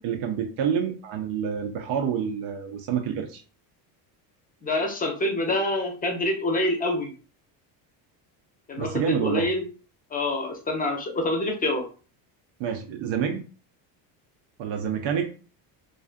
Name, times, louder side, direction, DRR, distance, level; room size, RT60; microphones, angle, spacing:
voice 1, 0.0-3.4 8.8-9.5 12.6-13.4 14.6-15.3, right 7 dB, 75° right, 3 dB, 0.6 m, -28 dB
voice 2, 4.6-7.1 8.7-9.6 10.1-11.8, left 2 dB, 20° left, 2 dB, 0.6 m, -26 dB
2.5 x 2.4 x 2.4 m, 0.37 s
cardioid pair, 130°, 45 cm